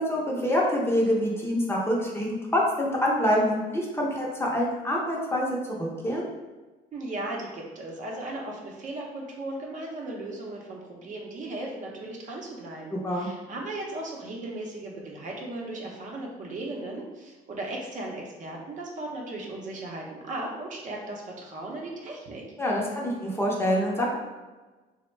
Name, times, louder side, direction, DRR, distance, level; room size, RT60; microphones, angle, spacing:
voice 1, 0.0-6.3 12.9-13.3 22.6-24.2, equal, 15° left, -3 dB, 0.6 m, -26 dB
voice 2, 6.9-22.4, right 2 dB, 50° right, -1 dB, 0.7 m, -37 dB
3.3 x 2.1 x 3.1 m, 1.2 s
cardioid pair, 110°, 17 cm